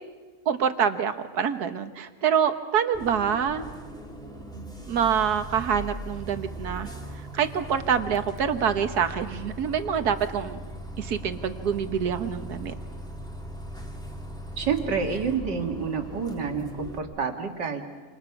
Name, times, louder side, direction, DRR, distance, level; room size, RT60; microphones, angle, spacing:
voice 1, 0.4-3.6 4.9-6.9 7.3-10.6 11.0-12.7, right 7 dB, 65° right, 9 dB, 1.7 m, -26 dB
Bus, 2.9-17.0, equal, ahead, 2.2 m, -39 dB
voice 2, 14.6-17.8, right 5 dB, 85° right, 4 dB, 2.6 m, -28 dB
27.5 x 27.5 x 5.9 m, 1.3 s
omnidirectional pair, 1.8 m